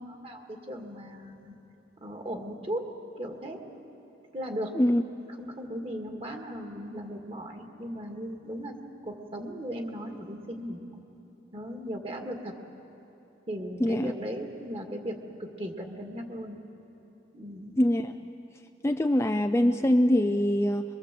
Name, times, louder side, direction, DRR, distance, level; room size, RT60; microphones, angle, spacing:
voice 1, 0.0-1.5 2.0-2.9 3.2-3.6 4.3-4.8 5.4-8.8 9.0-10.8 11.5-12.5 13.5-16.6 17.3-17.8, equal, 30° right, 3 dB, 2.1 m, -37 dB
voice 2, 13.8-14.1 17.8-18.1 18.8-20.8, left 1 dB, 15° left, 6 dB, 0.5 m, -23 dB
25.0 x 23.0 x 7.7 m, 2.9 s
head